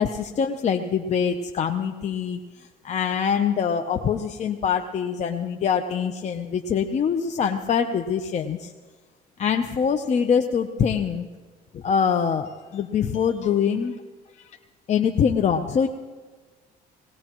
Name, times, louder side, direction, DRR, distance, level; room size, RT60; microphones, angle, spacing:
voice 1, 0.0-2.4 2.8-8.7 9.4-11.3 11.7-13.9 14.4-14.5 14.9-15.9, left 7 dB, 45° left, 5 dB, 0.8 m, -24 dB
20.5 x 18.5 x 3.1 m, 1.4 s
cardioid pair, 110°, 17 cm